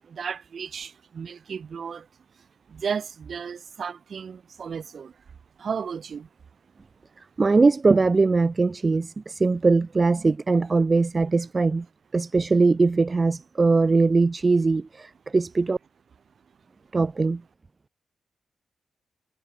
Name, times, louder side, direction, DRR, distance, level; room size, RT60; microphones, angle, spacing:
voice 1, 0.0-2.1 2.7-5.2 5.6-6.3, right 6 dB, 60° right, 1.3 m, -34 dB
voice 2, 7.4-11.8 12.1-15.8 16.9-17.4, right 3 dB, 40° right, 0.6 m, -21 dB
supercardioid pair, 40°, 0 cm